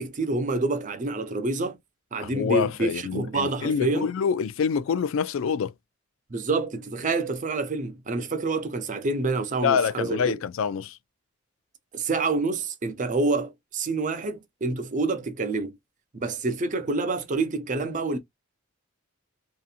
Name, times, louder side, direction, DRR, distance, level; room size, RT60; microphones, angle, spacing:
voice 1, 0.0-1.8 2.1-4.1 6.3-10.3 11.9-15.8 16.2-18.2, right 3 dB, 40° right, 0.5 m, -27 dB
voice 2, 2.2-5.7 9.6-11.0, left 6 dB, 65° left, 0.3 m, -26 dB
2.7 x 2.5 x 2.4 m
head